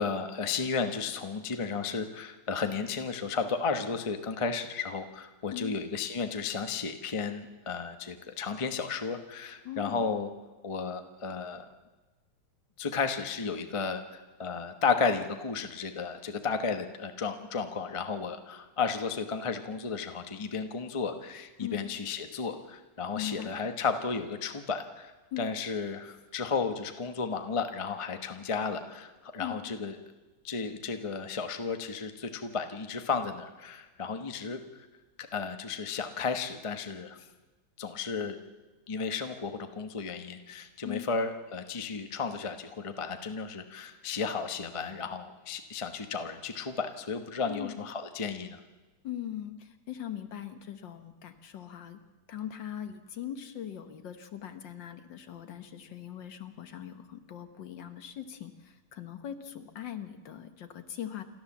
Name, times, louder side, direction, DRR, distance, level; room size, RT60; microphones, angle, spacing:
voice 1, 0.0-10.3 10.6-11.6 12.8-30.0 30.4-34.9 35.2-37.2 37.8-38.4 38.9-48.6, left 5 dB, 30° left, 7 dB, 0.6 m, -33 dB
voice 2, 9.7-10.0 21.6-21.8 23.1-23.5 25.3-25.4 29.4-29.6 40.8-41.1 47.5-47.8 49.0-52.0 52.3-61.2, left 10 dB, 60° left, 8 dB, 1.8 m, -40 dB
28.0 x 13.0 x 7.3 m, 1.2 s
omnidirectional pair, 2.4 m